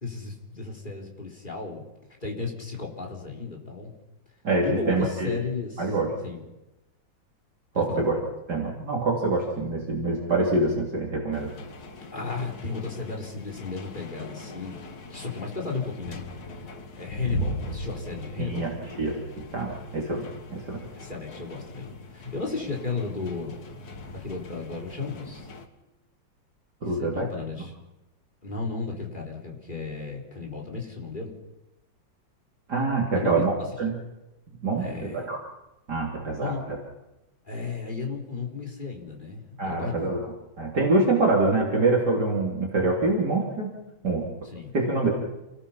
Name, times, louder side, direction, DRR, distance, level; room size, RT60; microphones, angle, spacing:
voice 1, 0.0-1.8 2.2-3.9 4.6-6.0 6.2-6.4 7.7-8.1 12.1-14.8 15.1-16.2 17.0-18.7 20.9-23.6 24.1-25.5 26.8-27.7 28.4-31.3 33.1-33.7 34.8-35.3 36.4-36.7 37.5-40.2 44.4-44.8, left 4 dB, 25° left, -1 dB, 4.0 m, -34 dB
voice 2, 4.4-5.3 5.8-6.1 7.8-8.1 8.5-11.5 18.4-18.7 19.0-19.2 19.5-20.3 20.5-20.8 26.8-27.2 32.7-33.9 34.6-35.4 35.9-36.8 39.6-40.2 40.6-43.7 44.0-44.2 44.7-45.1, right 3 dB, 55° right, -3 dB, 3.9 m, -25 dB
sound 1, 11.3-25.7, left 1 dB, 50° left, 2.0 m, -39 dB
29.0 x 19.0 x 5.7 m, 0.99 s
omnidirectional pair, 2.2 m